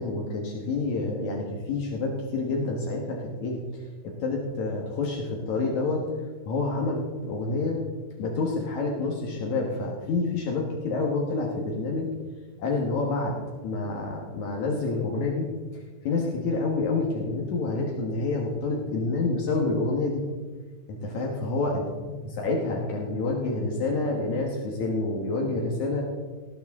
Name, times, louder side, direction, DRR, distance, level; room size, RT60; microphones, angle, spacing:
voice 1, 0.0-6.1 6.5-7.8 8.2-12.1 12.6-13.4 13.6-20.2 21.0-26.0, left 3 dB, 80° left, -1 dB, 1.6 m, -28 dB
19.0 x 9.0 x 3.6 m, 1.5 s
omnidirectional pair, 5.5 m